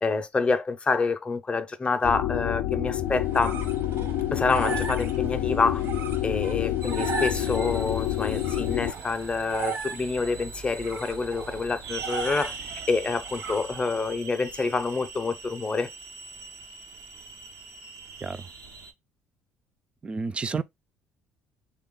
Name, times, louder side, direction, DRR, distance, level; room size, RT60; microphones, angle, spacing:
voice 1, 0.0-3.6 4.3-5.8 6.2-15.9, left 4 dB, 25° left, 0.6 m, -27 dB
sound 1, 2.0-8.9, left 13 dB, 80° left, 0.4 m, -28 dB
sound 2, 3.0-14.1, right 5 dB, 65° right, 1.0 m, -37 dB
sound 3, 6.8-18.9, right 4 dB, 80° right, 0.7 m, -42 dB
voice 2, 20.0-20.6, right 4 dB, 25° right, 0.4 m, -30 dB
3.3 x 2.3 x 3.7 m
cardioid pair, 95°, 5 cm